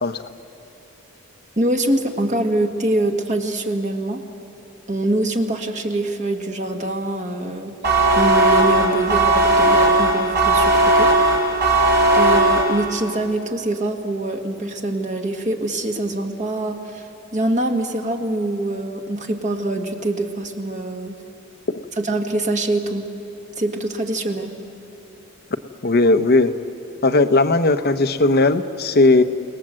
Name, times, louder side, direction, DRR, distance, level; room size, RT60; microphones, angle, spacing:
voice 1, 1.6-4.2 4.9-7.8 8.1-11.4 12.1-21.2 22.0-23.1 23.6-24.6, right 1 dB, 35° right, 3 dB, 1.8 m, -24 dB
sound 1, 7.8-13.1, right 2 dB, 50° right, 4.5 m, -17 dB
voice 2, 25.8-26.5 27.0-29.2, left 2 dB, 50° left, 10 dB, 0.9 m, -17 dB
29.5 x 19.0 x 7.7 m, 2.7 s
head